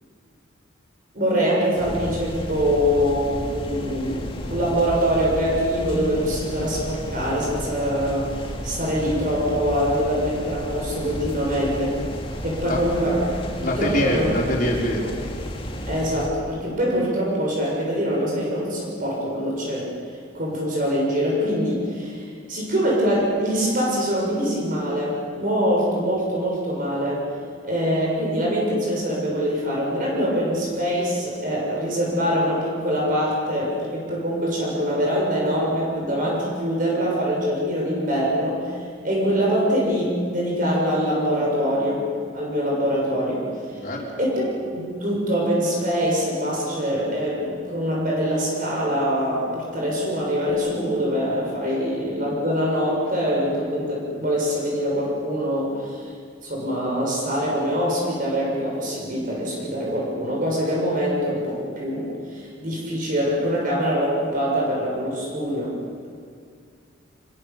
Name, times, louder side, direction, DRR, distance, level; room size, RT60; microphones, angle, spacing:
voice 1, 1.1-12.0 12.4-13.2 13.6-14.3 15.9-19.9 20.3-27.3 27.6-38.8 39.0-42.1 42.3-43.8 44.2-44.5 44.7-56.0 56.4-65.8, equal, 40° right, -3 dB, 6.6 m, -24 dB
sound 1, 1.8-16.3, equal, 25° left, 2.0 m, -33 dB
voice 2, 13.6-15.1 43.8-44.1, equal, 45° left, -2 dB, 4.7 m, -24 dB
26.0 x 22.5 x 7.0 m, 2.2 s
head